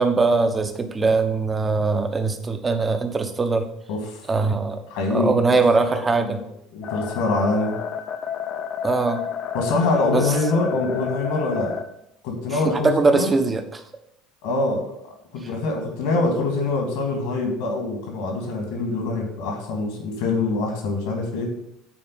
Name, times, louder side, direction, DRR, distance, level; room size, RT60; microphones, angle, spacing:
voice 1, 0.0-3.7 4.3-4.8 5.1-6.4 8.8-9.2 10.1-10.3 12.6-13.8, right 3 dB, 25° right, 7 dB, 1.0 m, -21 dB
voice 2, 3.9-4.2 4.9-5.6 5.9-7.7 9.5-11.8 12.2-13.3 14.4-14.9 15.3-21.5, left 3 dB, 65° left, 2 dB, 2.2 m, -25 dB
sound 1, 6.8-11.8, left 7 dB, 45° left, 0.7 m, -31 dB
8.7 x 4.4 x 5.5 m, 0.76 s
figure-of-eight pair, 65°, 0 cm